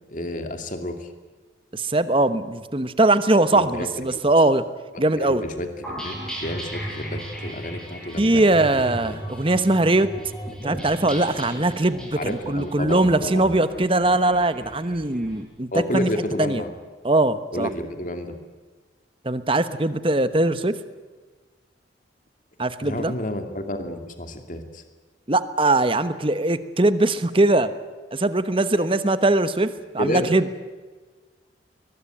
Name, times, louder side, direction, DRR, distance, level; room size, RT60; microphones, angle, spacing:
voice 1, 0.1-1.1 3.5-4.2 4.9-9.1 12.2-13.5 15.7-16.7 17.5-18.4 22.8-24.8 30.0-30.3, left 1 dB, 45° left, 6 dB, 2.6 m, -30 dB
voice 2, 1.7-4.6 5.0-5.4 8.2-10.1 10.6-16.1 16.4-16.6 17.0-17.7 19.2-20.8 22.6-23.1 25.3-27.7 28.1-29.7 29.9-30.4, right 2 dB, 30° right, 12 dB, 1.1 m, -21 dB
sound 1, 5.8-15.3, equal, ahead, 8.0 m, -36 dB
22.5 x 20.5 x 9.1 m, 1.4 s
head